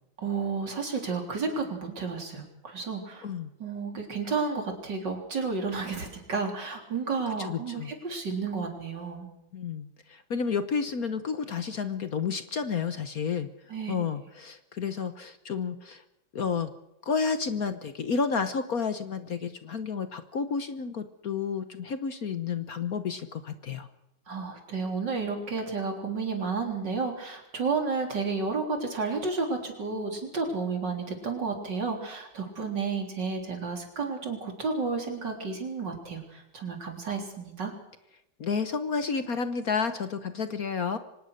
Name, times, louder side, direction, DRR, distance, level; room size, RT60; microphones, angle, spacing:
voice 1, 0.2-3.2 3.6-9.3 13.7-14.0 24.3-37.7, right 4 dB, 60° right, 3 dB, 4.3 m, -31 dB
voice 2, 7.4-7.9 9.5-13.5 13.9-16.0 16.3-16.7 17.0-23.9 38.4-41.0, left 5 dB, 50° left, 10 dB, 1.4 m, -31 dB
24.5 x 19.0 x 6.7 m, 0.86 s
omnidirectional pair, 2.1 m